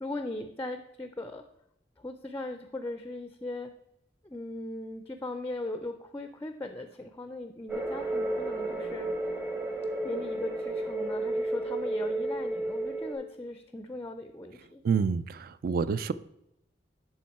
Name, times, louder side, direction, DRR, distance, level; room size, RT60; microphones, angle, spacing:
voice 1, 0.0-1.4 2.0-3.7 4.2-9.1 10.0-14.8, left 2 dB, 15° left, 8 dB, 0.4 m, -38 dB
sound 1, 7.7-13.2, right 2 dB, 10° right, 0.7 m, -32 dB
voice 2, 14.8-16.1, right 5 dB, 55° right, 16 dB, 0.3 m, -28 dB
11.0 x 3.7 x 4.1 m, 0.81 s
head